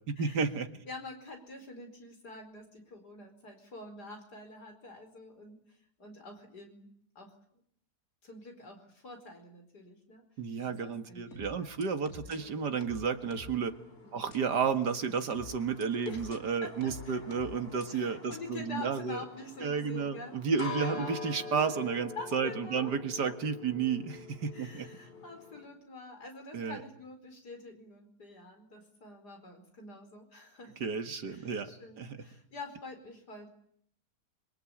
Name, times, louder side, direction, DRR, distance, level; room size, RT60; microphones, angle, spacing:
voice 1, 0.1-0.7 10.4-13.7 14.1-19.2 19.6-24.9 26.5-26.8 30.8-31.7 32.0-32.2, right 6 dB, 85° right, 8 dB, 2.4 m, -32 dB
voice 2, 0.9-7.3 8.2-10.2 10.6-11.8 12.2-12.4 14.0-14.3 16.1-16.3 16.6-17.2 17.9-20.4 20.8-21.2 22.2-22.9 23.3-23.4 24.5-30.9 31.3-33.5, left 3 dB, 75° left, 5 dB, 5.3 m, -47 dB
sound 1, 11.3-12.4 12.8-13.6 14.3-14.4 15.3-16.4 16.8-17.8 18.3-18.4, left 2 dB, 60° left, 2.8 m, -48 dB
sound 2, 12.3-25.7, left 4 dB, 35° left, 3.0 m, -46 dB
26.5 x 23.5 x 8.7 m, 0.68 s
omnidirectional pair, 1.7 m